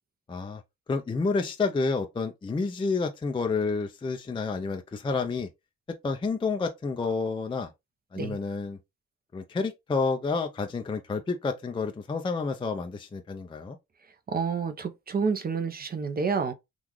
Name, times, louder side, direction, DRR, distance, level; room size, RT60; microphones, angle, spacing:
voice 1, 0.3-0.6 0.9-5.5 6.0-7.7 8.1-8.8 9.3-13.8, left 4 dB, 15° left, 0.5 m, -29 dB
voice 2, 14.3-16.5, right 5 dB, 30° right, 0.7 m, -29 dB
3.7 x 2.4 x 3.0 m
cardioid pair, 90°, 30 cm